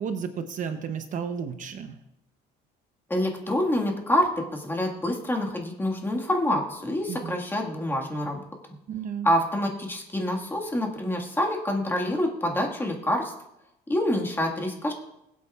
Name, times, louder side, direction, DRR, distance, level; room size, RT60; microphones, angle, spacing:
voice 1, 0.0-2.0 7.1-7.3 8.9-9.3, right 7 dB, 45° right, 8 dB, 0.7 m, -32 dB
voice 2, 3.1-8.4 9.2-13.3 13.9-14.9, left 1 dB, 10° left, 1 dB, 1.7 m, -26 dB
20.5 x 8.4 x 2.4 m, 0.87 s
cardioid pair, 135°, 18 cm